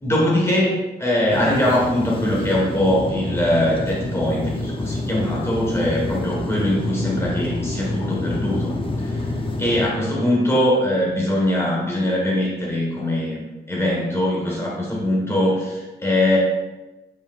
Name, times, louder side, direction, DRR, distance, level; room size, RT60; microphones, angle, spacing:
voice 1, 0.0-9.3 9.6-16.4, left 1 dB, 15° left, -4 dB, 1.5 m, -22 dB
Escalator - Metro Noise, 1.3-9.9, left 2 dB, 30° left, 0.7 m, -27 dB
7.9 x 5.1 x 2.5 m, 1.1 s
wide cardioid pair, 155°, 18 cm